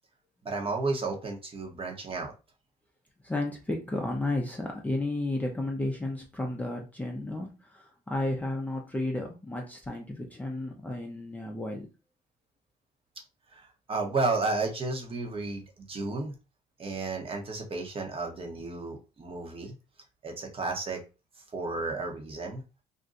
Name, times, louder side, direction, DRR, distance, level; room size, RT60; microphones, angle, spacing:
voice 1, 0.4-2.3 13.5-16.4 16.8-19.8 20.2-21.0 21.5-22.6, right 3 dB, 35° right, 2 dB, 1.0 m, -32 dB
voice 2, 3.2-11.9, left 2 dB, 10° left, 0 dB, 0.6 m, -33 dB
2.5 x 2.2 x 3.8 m, 0.30 s
cardioid pair, 110°, 17 cm